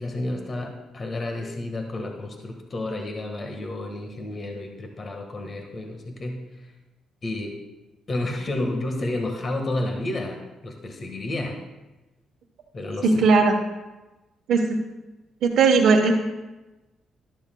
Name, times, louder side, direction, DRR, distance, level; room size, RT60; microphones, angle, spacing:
voice 1, 0.0-6.4 7.2-7.6 8.1-11.6 12.7-13.3, left 2 dB, 40° left, 2 dB, 1.6 m, -31 dB
voice 2, 13.0-13.5 14.5-14.8 15.4-16.1, right 4 dB, 75° right, -1 dB, 1.1 m, -18 dB
13.0 x 12.0 x 2.3 m, 1.1 s
cardioid pair, 90°, 0 cm